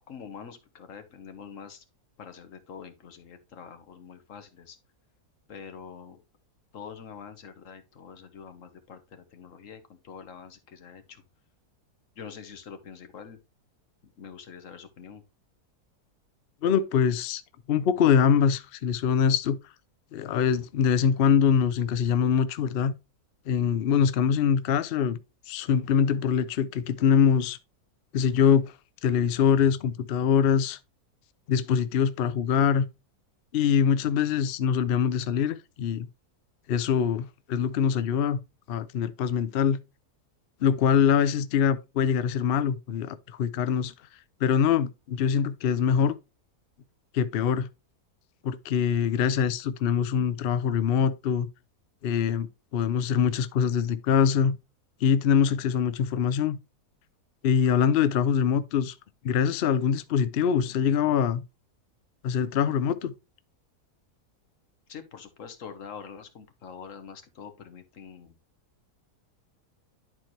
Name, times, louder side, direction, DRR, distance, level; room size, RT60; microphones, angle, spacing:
voice 1, 0.1-1.8 2.2-4.8 5.5-6.2 6.7-11.2 12.1-13.4 14.0-15.2 64.9-68.4, left 6 dB, 55° left, 1.4 m, -45 dB
voice 2, 16.6-17.4 17.7-19.6 20.1-22.9 23.5-25.2 25.5-27.6 28.1-28.7 29.0-30.8 31.5-32.9 33.5-36.1 36.7-38.4 38.7-39.8 40.6-43.9 44.4-46.1 47.1-47.7 48.4-51.5 52.0-52.5 52.7-54.6 55.0-56.6 57.4-58.9 59.2-61.4 62.2-63.1, left 7 dB, 75° left, 0.5 m, -24 dB
11.0 x 4.5 x 3.0 m
omnidirectional pair, 1.7 m